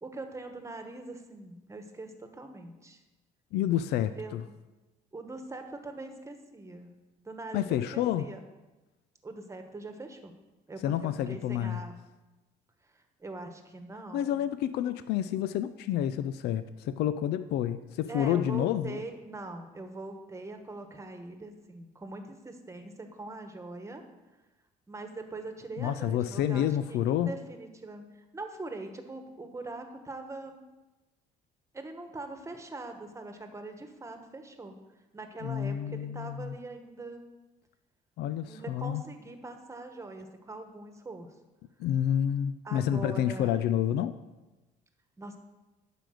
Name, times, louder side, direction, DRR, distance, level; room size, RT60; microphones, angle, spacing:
voice 1, 0.0-3.0 4.2-4.5 5.1-6.9 7.2-8.4 9.2-10.3 10.7-11.9 12.8-14.5 18.1-24.0 24.9-28.0 28.3-30.6 31.7-34.8 35.1-37.2 38.5-41.3 42.6-43.6 45.2-45.4, right 2 dB, 15° right, 6 dB, 1.3 m, -42 dB
voice 2, 3.5-4.4 7.5-8.3 10.8-11.8 14.1-19.0 25.8-27.3 35.4-36.5 38.2-39.0 41.8-44.2, left 10 dB, 75° left, 12 dB, 0.5 m, -29 dB
11.5 x 5.1 x 6.5 m, 1.1 s
cardioid pair, 110°, 17 cm